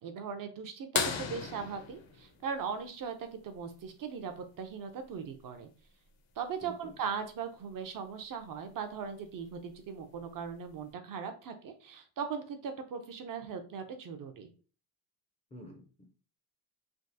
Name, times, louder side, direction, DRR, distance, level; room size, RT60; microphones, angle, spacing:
voice 1, 0.0-5.7 6.4-14.5, right 6 dB, 45° right, 7 dB, 0.4 m, -39 dB
sound 1, 0.9-3.4 5.3-5.4 7.7-7.8 9.5-9.7 10.5-10.6, left 6 dB, 70° left, 0.8 m, -35 dB
voice 2, 6.6-7.0 15.5-16.1, left 1 dB, 15° left, 2 dB, 0.4 m, -49 dB
3.5 x 2.3 x 2.6 m, 0.38 s
cardioid pair, 130°, 48 cm